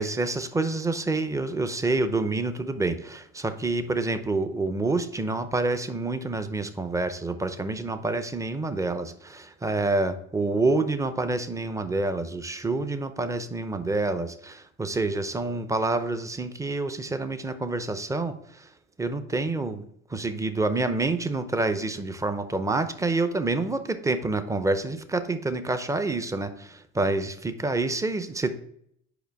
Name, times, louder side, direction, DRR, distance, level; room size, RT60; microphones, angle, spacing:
voice 1, 0.0-18.4 19.0-19.8 20.1-28.6, right 2 dB, 10° right, 10 dB, 0.5 m, -27 dB
5.0 x 4.9 x 4.6 m, 0.70 s
cardioid pair, 105°, 30 cm